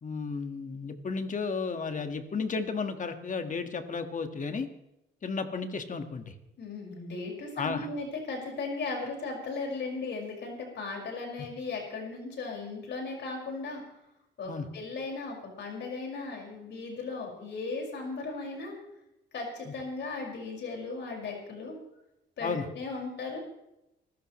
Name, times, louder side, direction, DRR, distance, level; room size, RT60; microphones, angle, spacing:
voice 1, 0.0-4.7 5.2-6.3 7.6-7.9 14.5-14.7 19.7-19.8 22.4-22.7, left 4 dB, 40° left, 7 dB, 1.8 m, -33 dB
voice 2, 6.6-13.8 14.4-18.7 19.3-21.8 22.4-23.4, left 3 dB, 65° left, 0 dB, 5.8 m, -37 dB
25.0 x 13.5 x 3.2 m, 0.88 s
cardioid pair, 90°, 20 cm